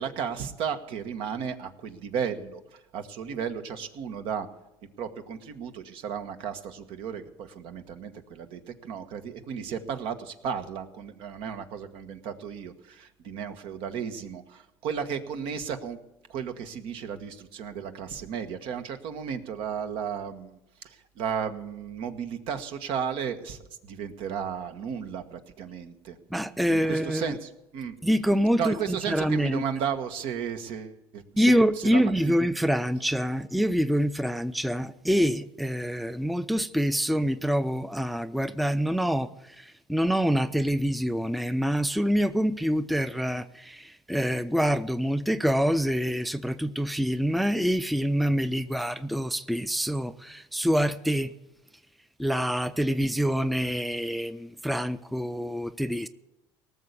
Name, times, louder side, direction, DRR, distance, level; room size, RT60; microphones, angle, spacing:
voice 1, 0.0-4.5 5.0-16.0 16.3-20.6 20.8-26.2 26.7-27.9 28.6-32.3, right 7 dB, 70° right, 1.4 m, -34 dB
voice 2, 26.3-27.3 28.0-28.8 29.1-29.6 31.4-39.3 39.6-51.3 52.2-56.1, equal, ahead, 0.5 m, -26 dB
18.0 x 6.9 x 8.3 m
supercardioid pair, 100°, 9 cm